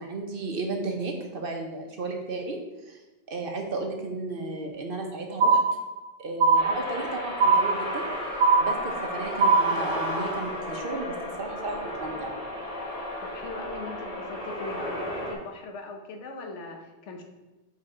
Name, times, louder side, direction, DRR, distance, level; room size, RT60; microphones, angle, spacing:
voice 1, 0.0-2.6 2.9-3.0 3.3-5.6 6.2-8.0 8.6-12.4, right 3 dB, 55° right, 2 dB, 1.0 m, -34 dB
sound 1, 5.4-6.1 6.4-7.1 7.4-8.1 8.4-9.1 9.4-10.1, right 4 dB, 85° right, 1.3 m, -21 dB
sound 2, 6.6-15.3, equal, 35° left, 1.4 m, -33 dB
voice 2, 13.2-17.2, left 3 dB, 85° left, 3 dB, 1.2 m, -40 dB
6.2 x 3.9 x 4.4 m, 1.1 s
omnidirectional pair, 1.2 m